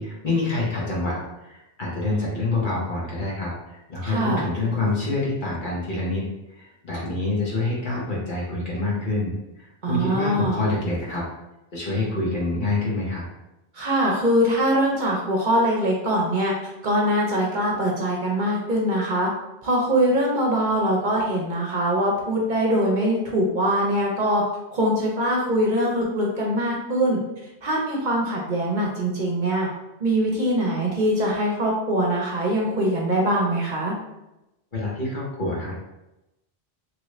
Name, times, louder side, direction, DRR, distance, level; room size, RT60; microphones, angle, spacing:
voice 1, 0.0-6.2 6.5-11.2 11.7-13.2 34.7-35.7, left 2 dB, 55° left, -4 dB, 1.1 m, -27 dB
voice 2, 4.0-4.5 9.8-10.6 13.7-16.5 16.8-19.3 19.6-24.4 24.7-27.2 27.6-29.7 30.0-33.9, equal, 55° right, -1 dB, 0.7 m, -22 dB
3.1 x 2.5 x 3.1 m, 0.93 s
omnidirectional pair, 1.1 m